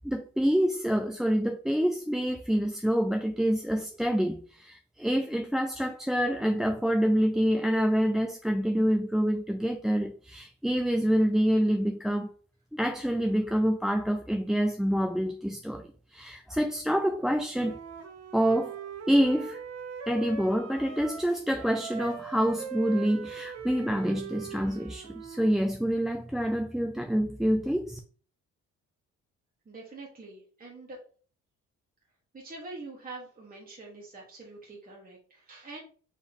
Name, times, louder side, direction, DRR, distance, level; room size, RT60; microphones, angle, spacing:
voice 1, 0.0-12.3 12.7-17.8 18.3-18.8 19.1-19.6 20.1-28.0, equal, ahead, 0.4 m, -27 dB
Wind instrument woodwind instrument, 17.5-21.3 21.6-25.6, right 6 dB, 60° right, 0.7 m, -41 dB
voice 2, 29.6-31.0 32.3-35.8, right 3 dB, 30° right, 1.3 m, -45 dB
4.2 x 3.1 x 3.5 m
cardioid pair, 90°, 30 cm